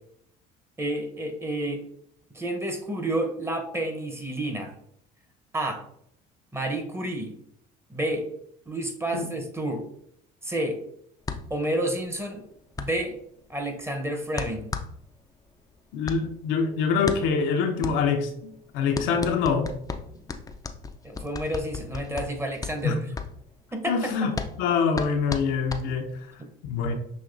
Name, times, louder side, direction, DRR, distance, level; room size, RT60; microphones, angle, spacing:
voice 1, 0.8-1.8 2.3-4.7 5.5-5.8 6.5-7.3 7.9-8.3 8.7-9.9 10.4-10.8 11.5-12.4 12.8-13.2 13.5-14.7 20.1-20.2 21.0-23.0 23.7-24.1, right 1 dB, 15° right, 4 dB, 0.8 m, -30 dB
sound 1, 11.2-26.3, left 4 dB, 20° left, 0.4 m, -36 dB
voice 2, 15.9-19.7 22.8-23.0 23.9-27.0, left 5 dB, 80° left, 4 dB, 0.7 m, -25 dB
6.1 x 2.8 x 2.6 m, 0.71 s
supercardioid pair, 90°, 19 cm